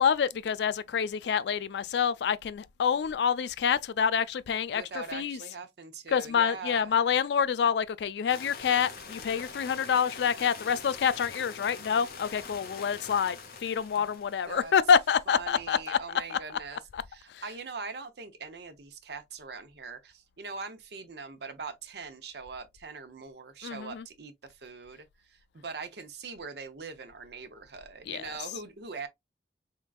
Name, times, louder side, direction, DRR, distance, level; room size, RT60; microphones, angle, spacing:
voice 1, 0.0-5.4 6.1-16.0 16.3-16.4 16.9-17.0 17.3-17.4 23.6-24.0 28.1-28.3, left 7 dB, 80° left, 0.3 m, -27 dB
voice 2, 4.7-6.9 14.0-14.1 14.5-14.7 15.3-16.8 17.1-29.1, right 4 dB, 70° right, 0.7 m, -42 dB
sound 1, 8.3-14.9, left 5 dB, 55° left, 0.8 m, -44 dB
3.7 x 3.5 x 2.4 m
head